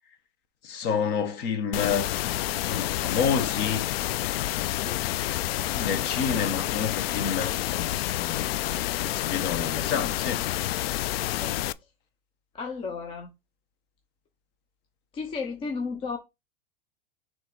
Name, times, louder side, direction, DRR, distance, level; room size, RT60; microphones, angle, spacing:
voice 1, 0.6-2.1 2.6-3.9 5.7-8.6 9.0-10.5, left 6 dB, 35° left, 1.4 m, -29 dB
sound 1, 1.7-11.7, left 15 dB, 80° left, 0.5 m, -29 dB
voice 2, 12.5-13.3 15.1-16.2, left 4 dB, 20° left, 0.6 m, -34 dB
6.0 x 3.5 x 4.7 m
supercardioid pair, 160°, 30 cm